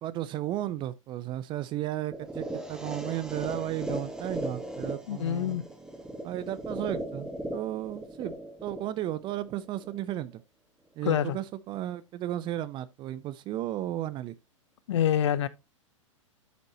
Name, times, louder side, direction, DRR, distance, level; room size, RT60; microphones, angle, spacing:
voice 1, 0.0-5.6 6.2-8.3 8.6-10.3 11.0-14.3, right 13 dB, 30° right, 0.5 m, -34 dB
sound 1, 2.1-10.1, right 1 dB, 5° right, 1.8 m, -38 dB
voice 2, 5.1-5.6 11.0-11.4 14.9-15.5, left 10 dB, 60° left, 0.8 m, -26 dB
12.5 x 5.3 x 2.9 m
figure-of-eight pair, 105°, 17 cm